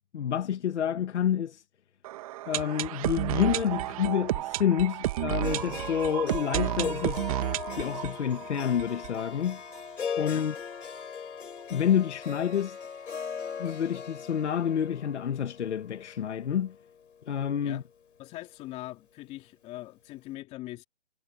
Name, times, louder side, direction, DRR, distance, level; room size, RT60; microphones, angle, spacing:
voice 1, 0.1-1.6 2.5-7.3 7.7-9.6 10.2-10.5 11.7-12.8 13.6-16.7 17.3-17.8, left 9 dB, 70° left, 1.6 m, -28 dB
sound 1, 2.0-9.8 10.1-10.2 10.4-10.5 11.0-11.1, right 15 dB, 30° right, 1.4 m, -32 dB
Harp, 5.4-17.6, left 6 dB, 90° left, 5.1 m, -39 dB
voice 2, 18.2-20.8, left 16 dB, 20° left, 2.5 m, -42 dB
hypercardioid pair, 160°, 36 cm